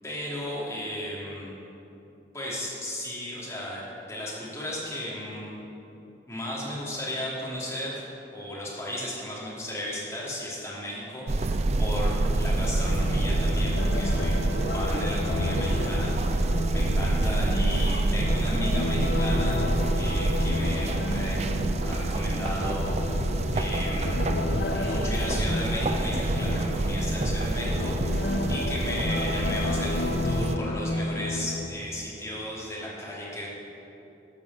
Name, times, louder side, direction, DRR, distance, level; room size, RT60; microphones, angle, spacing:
voice 1, 0.0-1.5 2.3-5.6 6.3-8.0 8.3-14.4 14.7-21.4 21.8-24.3 24.7-33.5, left 1 dB, 15° left, -6 dB, 2.6 m, -35 dB
sound 1, 11.3-30.6, right 2 dB, 35° right, 0.5 m, -27 dB
sound 2, 11.9-31.7, left 2 dB, 60° left, 0.5 m, -32 dB
14.0 x 5.4 x 7.4 m, 2.9 s
head